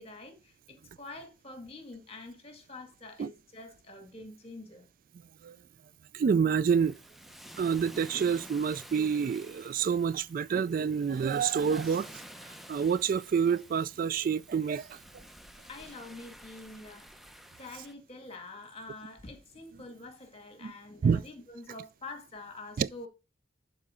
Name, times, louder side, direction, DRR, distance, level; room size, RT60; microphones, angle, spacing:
voice 1, 0.0-4.9 15.6-17.1 17.6-23.1, left 2 dB, 35° left, 2.0 m, -46 dB
voice 2, 6.1-7.0 7.6-12.1 12.4-15.2 20.6-20.7 21.0-21.2 22.8-22.9, right 6 dB, 50° right, 0.3 m, -28 dB
sound 1, 6.6-17.9, equal, ahead, 0.6 m, -51 dB
11.5 x 4.3 x 3.7 m
head